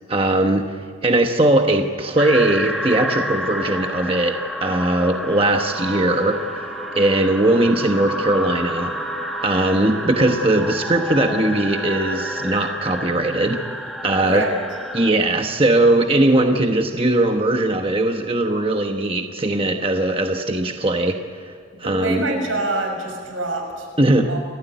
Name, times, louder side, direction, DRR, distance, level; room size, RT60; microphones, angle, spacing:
voice 1, 0.1-0.6 1.0-6.7 6.9-8.9 9.4-13.6 14.0-14.4 14.9-21.2 21.8-22.2 24.0-24.3, right 1 dB, 25° right, 4 dB, 1.1 m, -19 dB
sound 1, 2.2-15.1, equal, ahead, 1.4 m, -29 dB
Trumpet, 5.7-12.6, right 3 dB, 60° right, 3.4 m, -35 dB
voice 2, 21.8-23.9 24.3-24.4, right 2 dB, 85° right, 2 dB, 6.6 m, -25 dB
29.0 x 14.0 x 9.3 m, 2.1 s
head